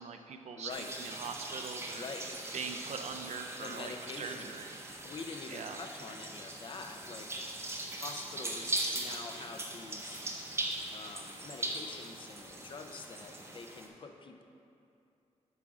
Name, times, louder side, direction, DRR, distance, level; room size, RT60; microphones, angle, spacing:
voice 1, 0.0-2.0 2.5-4.8 5.5-5.8, right 6 dB, 70° right, 6 dB, 0.5 m, -42 dB
voice 2, 0.6-0.9 1.9-2.3 3.5-4.6 5.0-7.6 7.9-10.2 10.9-14.4, left 4 dB, 45° left, 5 dB, 0.5 m, -46 dB
sound 1, 0.7-13.9, right 2 dB, 20° right, 0.7 m, -40 dB
8.2 x 3.7 x 6.0 m, 2.7 s
wide cardioid pair, 155°, 12 cm